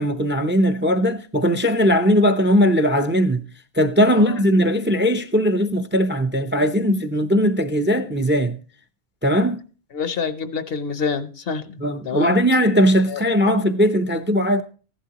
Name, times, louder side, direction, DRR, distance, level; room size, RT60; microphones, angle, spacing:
voice 1, 0.0-3.4 3.7-8.6 9.2-9.6 11.8-14.6, equal, 15° right, 0.4 m, -19 dB
voice 2, 9.9-12.4 13.1-13.2, left 5 dB, 70° left, 1.1 m, -27 dB
15.0 x 11.0 x 2.9 m
omnidirectional pair, 1.0 m